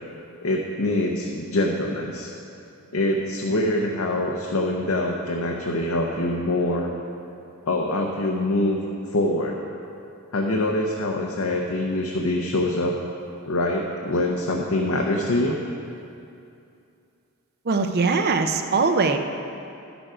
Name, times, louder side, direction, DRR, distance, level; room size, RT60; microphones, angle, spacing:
voice 1, 0.4-2.3 2.9-6.9 7.7-8.8 9.1-9.6 10.3-13.0 13.5-15.6, left 1 dB, 65° left, 0 dB, 0.7 m, -24 dB
voice 2, 17.7-19.2, right 4 dB, 45° right, 6 dB, 0.6 m, -21 dB
11.5 x 7.0 x 4.9 m, 2.6 s
head